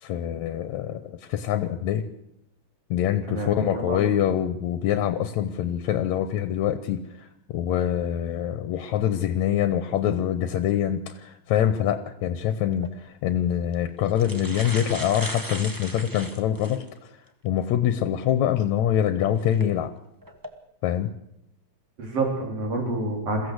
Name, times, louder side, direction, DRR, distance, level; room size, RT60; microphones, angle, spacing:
voice 1, 0.0-2.0 2.9-17.2 17.4-19.9 20.8-21.1, left 10 dB, 75° left, 10 dB, 2.2 m, -25 dB
voice 2, 3.3-4.0 22.0-23.5, right 2 dB, 55° right, 2 dB, 5.0 m, -28 dB
sound 1, 12.7-12.9 13.7-13.8 14.1-16.9 17.4-17.5 19.4-19.6 20.2-20.5, right 1 dB, 15° right, 0.7 m, -37 dB
22.5 x 15.0 x 8.0 m, 0.80 s
omnidirectional pair, 3.3 m